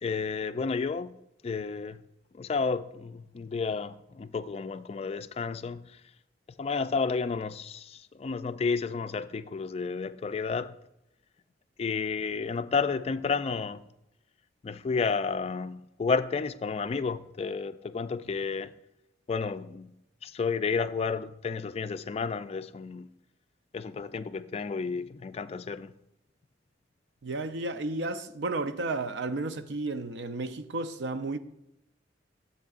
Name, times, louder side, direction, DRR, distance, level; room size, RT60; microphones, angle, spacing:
voice 1, 0.0-1.2 1.4-2.0 2.3-5.8 6.6-10.7 11.8-13.8 14.6-18.7 19.3-19.9 20.2-23.1 23.7-25.9, left 5 dB, 35° left, 0.3 m, -31 dB
voice 2, 27.2-31.4, right 2 dB, 75° right, 0.6 m, -32 dB
13.0 x 7.8 x 2.5 m
head